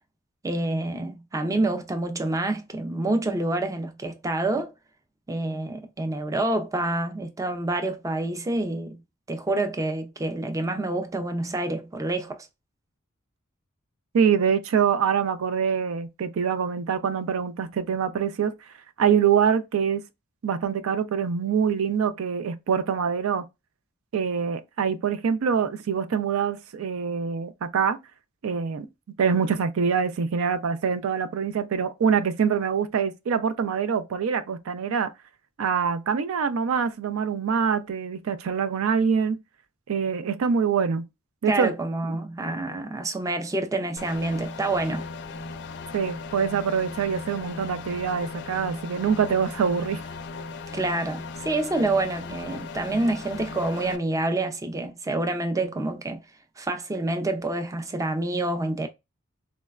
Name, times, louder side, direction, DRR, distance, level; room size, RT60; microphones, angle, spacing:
voice 1, 0.4-4.7 5.3-9.0 9.3-12.5 41.5-45.1 50.7-56.2 56.6-58.9, right 2 dB, 15° right, 0.4 m, -27 dB
voice 2, 14.1-18.5 19.0-20.0 20.4-23.4 24.1-28.0 28.4-28.9 29.2-35.1 35.6-39.4 39.9-41.0 41.4-41.7 45.9-50.0, right 6 dB, 90° right, 0.4 m, -24 dB
sound 1, 44.0-54.0, left 4 dB, 55° left, 0.4 m, -37 dB
3.9 x 2.1 x 2.3 m
head